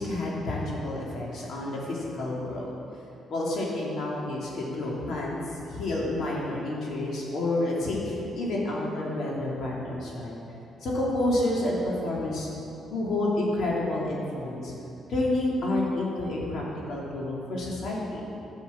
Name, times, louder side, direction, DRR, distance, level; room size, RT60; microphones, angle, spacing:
voice 1, 0.0-2.7 3.3-10.4 10.8-12.5 12.9-14.7 15.1-16.6 16.9-18.2, left 1 dB, 65° left, -4 dB, 3.1 m, -29 dB
11.5 x 7.1 x 7.4 m, 2.8 s
cardioid pair, 90°, 0 cm